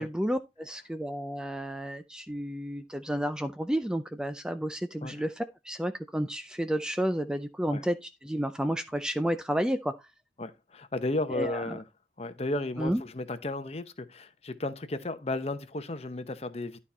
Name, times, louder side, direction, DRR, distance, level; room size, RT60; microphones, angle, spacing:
voice 1, 0.0-9.9 11.3-11.8 12.8-13.0, equal, 5° right, 0.4 m, -31 dB
voice 2, 10.4-11.8 12.2-16.8, left 2 dB, 35° left, 0.8 m, -34 dB
11.5 x 4.2 x 4.3 m
head